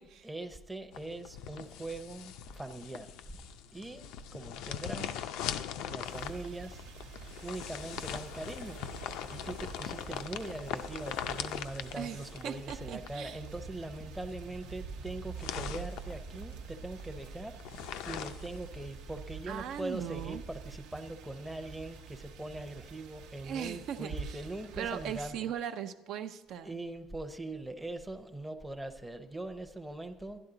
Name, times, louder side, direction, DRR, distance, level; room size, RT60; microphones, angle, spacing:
voice 1, 0.2-3.4 3.7-5.4 5.9-6.9 7.4-8.8 9.3-25.5 26.6-30.4, right 2 dB, 5° right, 5 dB, 0.6 m, -42 dB
sound 1, 0.9-19.2, left 10 dB, 70° left, 0.5 m, -42 dB
sound 2, 6.1-25.2, right 5 dB, 90° right, 0.9 m, -47 dB
voice 2, 12.4-13.4 19.5-20.4 23.4-24.4 24.8-26.7, right 9 dB, 60° right, 8 dB, 0.4 m, -39 dB
11.5 x 11.0 x 3.9 m, 1.0 s
cardioid pair, 135°, 0 cm